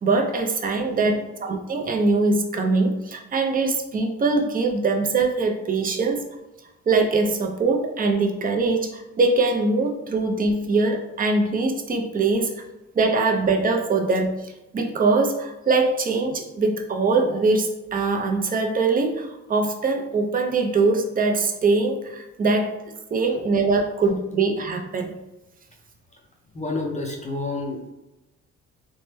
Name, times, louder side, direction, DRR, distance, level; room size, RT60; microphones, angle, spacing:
voice 1, 0.0-6.2 6.9-12.5 13.0-22.7 23.1-25.2, right 3 dB, 30° right, 3 dB, 0.5 m, -22 dB
voice 2, 0.8-1.3 26.1-26.2 26.5-27.9, left 2 dB, 25° left, 0 dB, 0.5 m, -30 dB
3.1 x 2.1 x 3.0 m, 0.99 s
cardioid pair, 90°, 30 cm